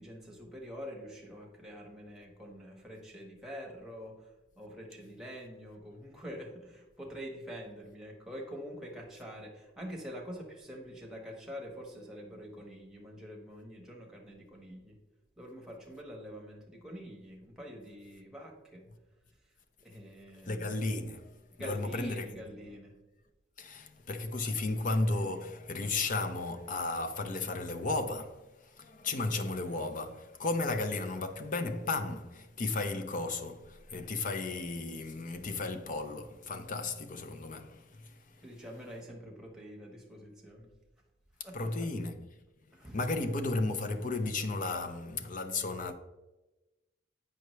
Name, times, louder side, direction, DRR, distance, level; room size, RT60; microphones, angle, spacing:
voice 1, 0.0-4.2 4.6-14.9 15.4-18.9 19.8-20.7 21.6-23.0 38.4-40.7 41.4-41.7 42.7-43.0, equal, 5° right, 1.2 m, -45 dB
voice 2, 20.4-21.3 21.6-22.4 23.6-28.5 28.8-38.1 41.5-42.3 42.9-45.9, left 2 dB, 45° left, 0.6 m, -34 dB
7.8 x 5.6 x 3.1 m
head